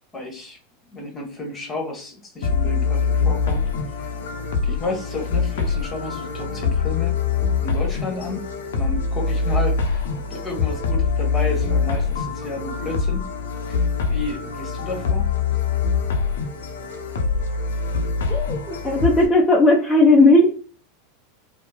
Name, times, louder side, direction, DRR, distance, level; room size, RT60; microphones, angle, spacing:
voice 1, 0.1-0.6 0.9-3.6 3.9-4.1 4.6-7.2 7.6-8.5 8.7-13.3 13.7-13.8 14.1-15.3, left 2 dB, 25° left, 1 dB, 1.1 m, -31 dB
sound 1, 2.4-19.3, left 5 dB, 80° left, 0.6 m, -24 dB
voice 2, 18.3-20.5, left 2 dB, 5° left, -3 dB, 0.6 m, -16 dB
2.8 x 2.0 x 2.3 m, 0.40 s
hypercardioid pair, 105°, 0 cm